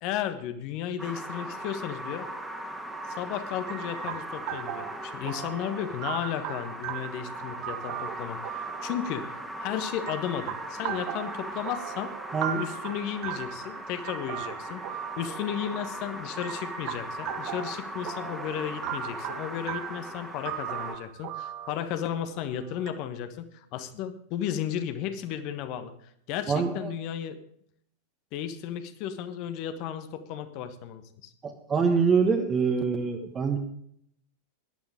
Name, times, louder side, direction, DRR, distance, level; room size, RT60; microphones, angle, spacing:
voice 1, 0.0-2.3 3.1-12.1 12.6-14.8 15.2-25.9 26.3-27.4 28.3-31.3, left 10 dB, 40° left, 10 dB, 1.4 m, -34 dB
sound 1, 1.0-20.9, right 1 dB, ahead, 2.1 m, -39 dB
sound 2, 3.7-22.9, right 11 dB, 45° right, 1.2 m, -39 dB
voice 2, 26.5-26.9 31.4-33.6, right 5 dB, 20° right, 3 dB, 1.5 m, -25 dB
17.5 x 11.5 x 3.7 m, 0.68 s
figure-of-eight pair, 90°, 0 cm